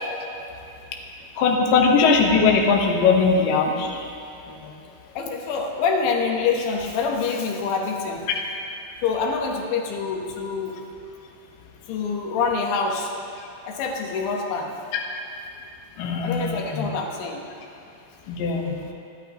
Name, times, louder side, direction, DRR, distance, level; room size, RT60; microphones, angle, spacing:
voice 1, 1.4-4.0 4.5-4.7 16.0-16.9 18.3-18.8, left 5 dB, 85° left, 0 dB, 1.9 m, -20 dB
voice 2, 5.2-8.3 9.0-10.8 11.9-13.1 13.6-14.7 16.2-17.4, left 5 dB, 70° left, 1 dB, 3.2 m, -26 dB
28.5 x 11.5 x 3.0 m, 2.6 s
omnidirectional pair, 6.0 m